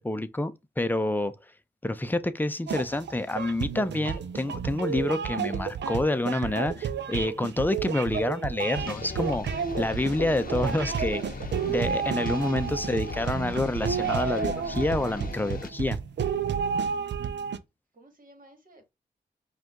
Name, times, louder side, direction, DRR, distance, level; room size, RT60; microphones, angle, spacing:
voice 1, 0.0-1.3 1.8-11.2 11.7-16.0, left 1 dB, 10° left, 0.6 m, -28 dB
sound 1, 2.7-17.6, right 7 dB, 75° right, 0.5 m, -31 dB
sound 2, 8.7-15.7, left 5 dB, 50° left, 0.7 m, -39 dB
voice 2, 17.9-18.9, right 1 dB, 50° right, 1.7 m, -56 dB
4.9 x 2.5 x 3.6 m
cardioid pair, 50°, 18 cm